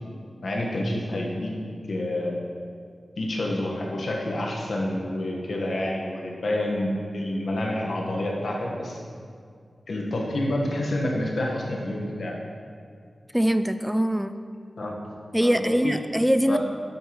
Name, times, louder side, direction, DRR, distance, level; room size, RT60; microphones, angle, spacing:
voice 1, 0.4-1.5 1.9-2.4 3.2-9.0 9.9-12.3 14.8-14.9 15.4-15.9 16.5-16.6, left 1 dB, 75° left, -1 dB, 1.2 m, -28 dB
voice 2, 13.3-14.4 15.3-16.6, equal, 5° right, 9 dB, 0.3 m, -22 dB
9.0 x 6.7 x 3.0 m, 2.2 s
cardioid pair, 45°, 0 cm